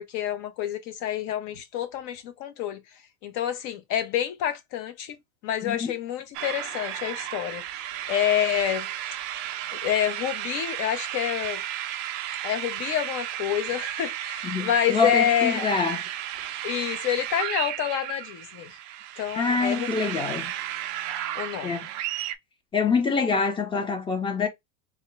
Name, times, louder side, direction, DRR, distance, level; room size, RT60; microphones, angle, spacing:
voice 1, 0.0-2.8 3.2-5.2 5.4-7.6 8.1-8.9 9.8-11.6 12.4-15.7 16.6-18.7 19.2-19.9 21.4-21.8, left 10 dB, 50° left, 0.8 m, -28 dB
sound 1, 6.3-22.3, right 12 dB, 45° right, 0.4 m, -33 dB
voice 2, 14.4-16.0 19.3-20.5 21.6-21.9 22.7-24.5, left 4 dB, 15° left, 0.6 m, -25 dB
3.6 x 2.1 x 3.2 m
supercardioid pair, 140°, 40 cm